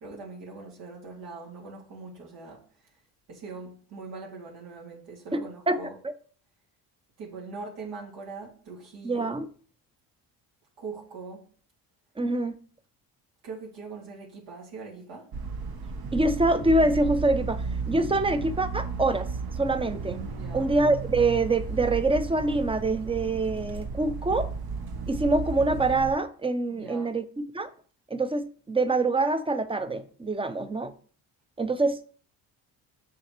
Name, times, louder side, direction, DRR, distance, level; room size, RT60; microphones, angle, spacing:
voice 1, 0.0-2.6 3.3-6.0 7.2-9.4 10.8-11.4 13.4-15.3 20.3-20.7 26.7-27.1, right 4 dB, 75° right, 2.4 m, -42 dB
voice 2, 5.3-5.8 6.0-6.1 9.0-9.5 12.2-12.5 16.1-19.3 19.6-20.2 20.5-24.5 25.1-27.7 28.1-30.9 31.6-32.2, right 2 dB, 10° right, 0.7 m, -25 dB
sound 1, 15.3-26.1, right 4 dB, 50° right, 1.1 m, -34 dB
6.3 x 6.3 x 3.1 m
supercardioid pair, 75°, 44 cm